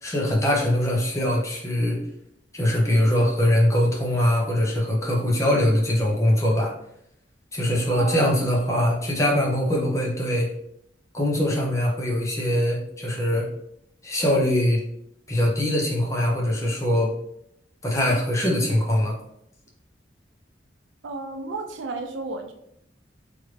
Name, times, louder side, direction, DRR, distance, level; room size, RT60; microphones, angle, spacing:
voice 1, 0.0-2.0 2.5-6.7 7.5-10.5 11.1-13.5 14.0-14.8 15.3-17.1 17.8-19.2, left 1 dB, 15° left, -2 dB, 0.7 m, -22 dB
voice 2, 7.9-8.3 21.0-22.5, right 3 dB, 75° right, 5 dB, 0.4 m, -32 dB
3.2 x 2.6 x 3.1 m, 0.74 s
head